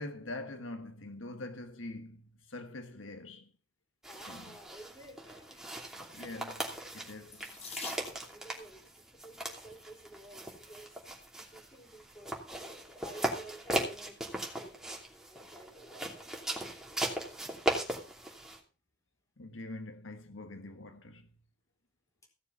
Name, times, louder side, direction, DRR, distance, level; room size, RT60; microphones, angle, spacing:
voice 1, 0.0-3.5 4.3-4.6 6.1-7.5 19.4-21.3, left 2 dB, 85° left, 1.5 m, -44 dB
sound 1, 4.0-18.6, right 1 dB, 5° right, 2.8 m, -39 dB
voice 2, 4.1-5.7 8.0-8.8 9.1-10.9 11.2-12.4 12.9-14.2 14.6-14.8 15.3-16.3 22.2-22.3, right 1 dB, 15° left, 4.0 m, -52 dB
Water tap faucet / Sink (filling or washing), 7.3-8.6 9.6-10.0 10.7-10.8 11.1-11.2, left 5 dB, 35° left, 2.3 m, -45 dB
16.5 x 6.9 x 5.5 m
head